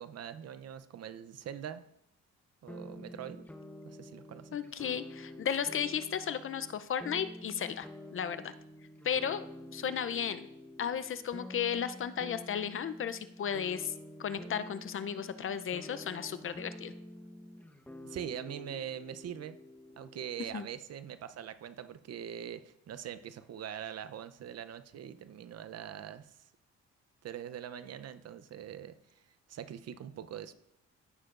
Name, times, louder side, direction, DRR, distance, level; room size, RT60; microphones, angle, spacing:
voice 1, 0.0-1.8 2.6-3.5 3.8-4.6 18.0-19.6 20.0-26.3 27.2-28.9 29.5-30.5, right 9 dB, 55° right, 12 dB, 0.7 m, -43 dB
sound 1, 2.7-20.5, left 1 dB, 5° left, 1.0 m, -49 dB
voice 2, 4.5-8.5 9.0-10.5 10.8-13.9 14.2-16.9 20.5-20.7, left 8 dB, 45° left, 13 dB, 0.6 m, -34 dB
15.5 x 6.7 x 2.5 m, 0.74 s
cardioid pair, 90°, 30 cm